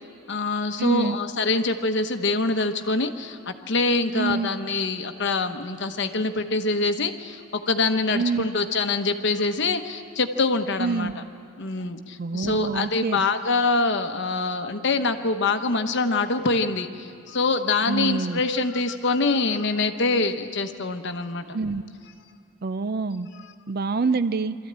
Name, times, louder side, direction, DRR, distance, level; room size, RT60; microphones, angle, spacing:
voice 1, 0.3-11.1 11.6-21.4, left 3 dB, 55° left, 7 dB, 1.0 m, -25 dB
voice 2, 0.8-1.2 4.1-4.5 8.1-8.5 10.8-11.2 12.2-13.2 17.9-18.4 21.5-21.8 22.6-23.3 23.7-24.6, right 4 dB, 45° right, 13 dB, 0.5 m, -26 dB
24.5 x 14.0 x 8.8 m, 2.4 s
head